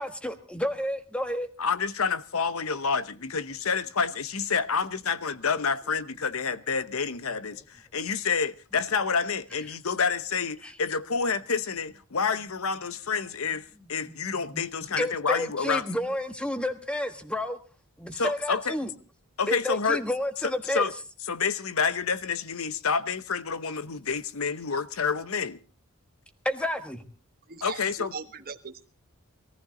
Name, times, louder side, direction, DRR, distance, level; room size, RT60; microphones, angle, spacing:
voice 1, 0.0-1.5 10.6-10.7 14.1-14.2 14.5-14.7 15.0-17.6 18.0-18.9 19.5-20.9 26.4-27.0, left 1 dB, 5° left, 1.4 m, -30 dB
voice 2, 1.6-15.8 18.2-18.7 19.4-20.0 20.4-20.9 21.3-25.6 27.6-28.1, left 5 dB, 65° left, 0.9 m, -28 dB
voice 3, 27.5-28.8, right 5 dB, 40° right, 1.3 m, -39 dB
22.0 x 14.5 x 3.8 m
head